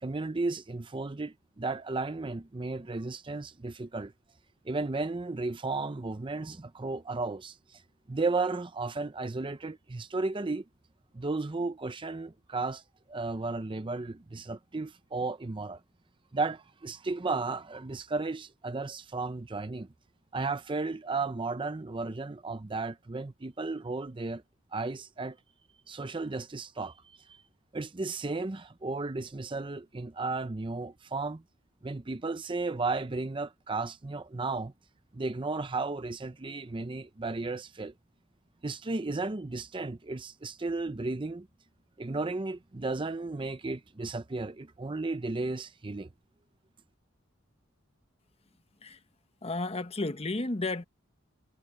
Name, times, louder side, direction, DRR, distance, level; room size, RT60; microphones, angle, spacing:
voice 1, 0.0-4.1 4.6-7.8 8.1-10.6 11.1-12.8 13.1-15.8 16.3-19.9 20.3-24.4 24.7-25.4 25.9-27.0 27.3-27.4 27.7-31.4 31.8-34.7 35.1-37.9 38.6-41.5 42.0-46.1, right 3 dB, 25° right, 0.6 m, -34 dB
voice 2, 49.4-50.8, left 2 dB, 30° left, 1.0 m, -32 dB
head